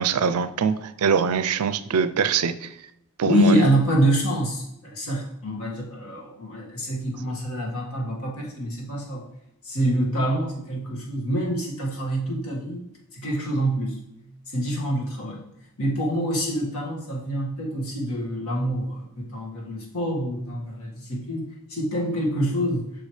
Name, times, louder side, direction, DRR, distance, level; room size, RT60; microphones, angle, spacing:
voice 1, 0.0-2.7 3.2-3.7, right 6 dB, 85° right, 12 dB, 0.5 m, -23 dB
voice 2, 3.3-9.3 9.6-12.8 13.1-14.0 14.5-15.5 15.8-22.9, equal, 75° left, -2 dB, 1.9 m, -26 dB
8.1 x 6.2 x 3.3 m, 0.82 s
head